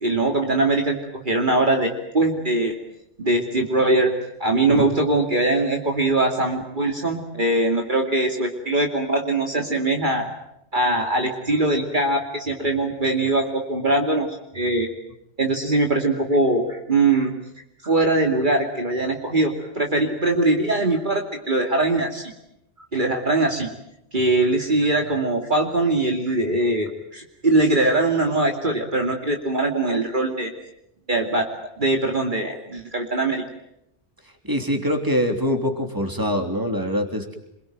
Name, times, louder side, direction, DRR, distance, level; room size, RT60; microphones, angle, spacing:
voice 1, 0.0-1.0 1.2-2.7 3.2-4.1 4.4-10.3 10.7-14.9 15.4-17.4 17.8-22.3 22.9-23.7 24.1-30.5 31.1-31.5 31.8-33.4, right 2 dB, 45° right, 2 dB, 2.7 m, -21 dB
voice 2, 34.4-37.4, equal, 20° right, 5 dB, 3.4 m, -24 dB
27.5 x 22.5 x 9.3 m, 0.81 s
omnidirectional pair, 1.2 m